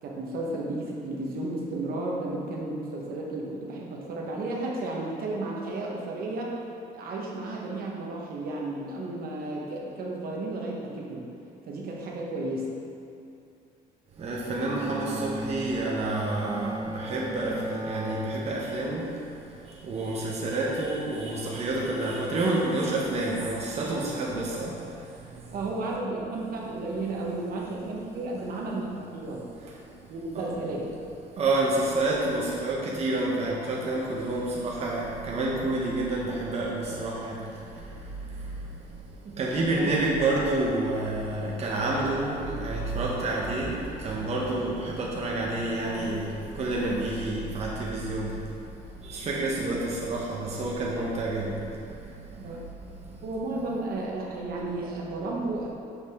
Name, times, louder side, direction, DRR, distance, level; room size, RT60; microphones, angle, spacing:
voice 1, 0.0-6.5 6.9-11.2 11.6-12.7 25.5-29.5 30.1-30.9 39.7-39.9 52.4-52.6 53.2-55.7, right 2 dB, 60° right, -2 dB, 1.1 m, -33 dB
Bowed string instrument, 14.2-19.4, equal, 25° right, 0.5 m, -37 dB
voice 2, 14.2-19.1 19.4-25.5 30.4-30.5 31.3-38.9 39.2-48.5 49.0-52.5 53.0-53.2, right 2 dB, 40° right, -4 dB, 1.0 m, -29 dB
6.6 x 5.4 x 3.5 m, 2.6 s
cardioid pair, 110°, 17 cm